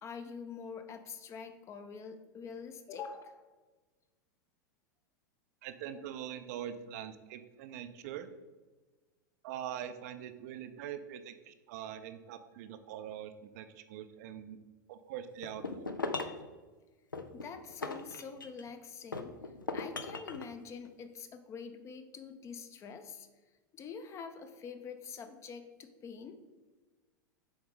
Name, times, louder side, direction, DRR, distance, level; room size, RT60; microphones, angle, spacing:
voice 1, 0.0-3.5 17.3-19.3 19.7-23.3 23.7-26.4, left 6 dB, 25° left, 8 dB, 0.6 m, -45 dB
voice 2, 5.6-8.3 9.4-14.6 14.9-15.9, right 10 dB, 50° right, 10 dB, 0.5 m, -43 dB
sound 1, 15.4-16.5 17.1-18.7 19.1-20.5, left 3 dB, 85° left, 0.5 m, -38 dB
7.1 x 4.7 x 3.6 m, 1.3 s
figure-of-eight pair, 90°, 11 cm